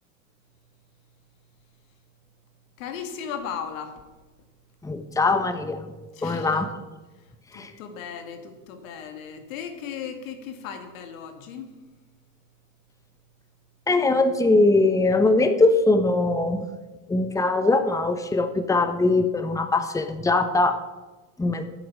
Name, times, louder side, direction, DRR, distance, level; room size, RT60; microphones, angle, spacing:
voice 1, 2.8-4.0 6.1-6.7 7.5-11.7, left 7 dB, 80° left, 7 dB, 2.1 m, -36 dB
voice 2, 4.8-5.9 6.2-6.7 7.5-7.7 13.9-16.6 17.1-20.8 21.4-21.7, left 2 dB, 10° left, 9 dB, 1.0 m, -21 dB
9.2 x 7.8 x 9.4 m, 1.2 s
supercardioid pair, 100°, 39 cm